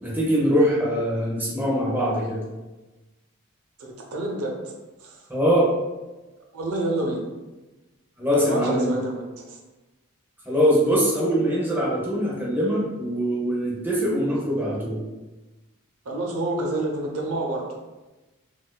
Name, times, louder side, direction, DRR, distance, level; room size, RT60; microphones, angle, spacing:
voice 1, 0.0-2.4 5.3-5.7 8.2-9.0 10.5-15.0, equal, 10° right, -5 dB, 0.7 m, -22 dB
voice 2, 3.8-4.5 5.0-5.3 6.5-7.3 8.3-9.6 16.0-17.6, right 2 dB, 80° right, 0 dB, 0.6 m, -28 dB
4.1 x 2.5 x 2.2 m, 1.1 s
head